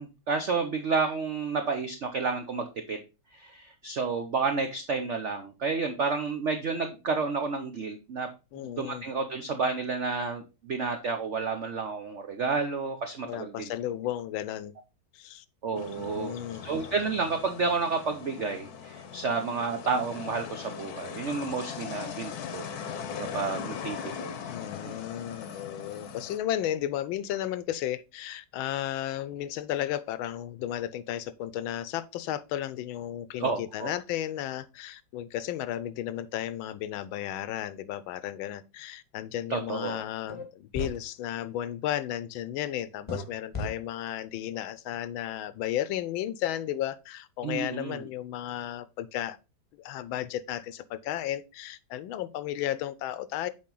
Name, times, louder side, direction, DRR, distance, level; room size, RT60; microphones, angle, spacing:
voice 1, 0.0-3.0 3.3-8.3 8.8-13.7 15.6-16.3 16.6-22.6 22.9-23.0 23.3-24.3 24.9-25.0 33.4-33.9 39.5-40.0 47.4-48.0, right 4 dB, 85° right, 0.6 m, -30 dB
voice 2, 8.5-9.0 13.3-14.7 15.1-15.4 15.7-16.6 24.5-49.4 49.8-53.5, left 12 dB, 80° left, 1.4 m, -34 dB
sound 1, 15.8-26.4, left 7 dB, 60° left, 1.1 m, -40 dB
sound 2, 40.3-40.4 40.7-41.0 43.1-43.2 43.5-43.7, left 2 dB, 25° left, 0.7 m, -33 dB
7.5 x 4.4 x 3.8 m
omnidirectional pair, 2.2 m